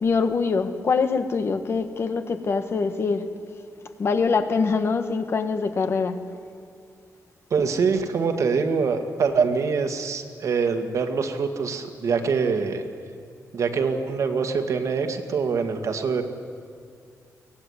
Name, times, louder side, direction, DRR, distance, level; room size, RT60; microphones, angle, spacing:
voice 1, 0.0-3.3 4.0-6.2, left 4 dB, 45° left, 1.4 m, -24 dB
voice 2, 7.5-12.8 13.5-16.2, right 5 dB, 60° right, 2.1 m, -24 dB
23.5 x 18.5 x 9.8 m
wide cardioid pair, 170°, 6 cm